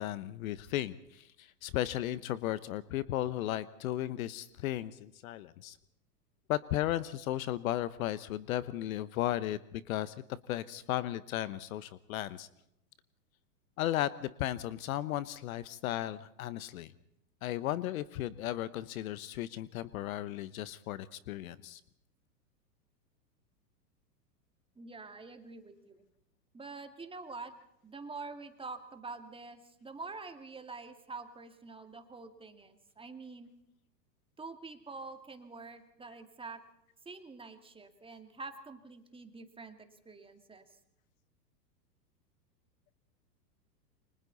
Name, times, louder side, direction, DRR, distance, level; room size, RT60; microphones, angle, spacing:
voice 1, 0.0-5.8 6.5-10.1 10.5-12.5 13.8-16.9 17.4-21.8, left 13 dB, 55° left, 16 dB, 1.2 m, -35 dB
voice 2, 24.8-26.0 26.5-27.5 27.8-33.5 34.4-36.6 37.1-40.8, right 3 dB, 10° right, 7 dB, 2.3 m, -46 dB
29.0 x 25.0 x 4.1 m, 0.76 s
hypercardioid pair, 110°, 49 cm